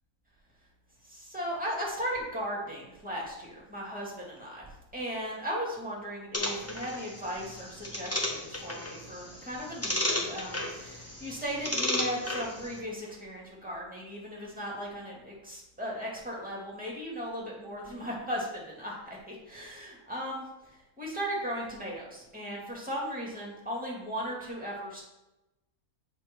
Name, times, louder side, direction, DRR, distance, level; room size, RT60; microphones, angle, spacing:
voice 1, 1.0-25.0, equal, 5° right, -4 dB, 2.1 m, -37 dB
sound 1, 6.3-12.8, left 1 dB, 15° left, 0.7 m, -34 dB
7.0 x 5.1 x 4.4 m, 0.96 s
omnidirectional pair, 1.6 m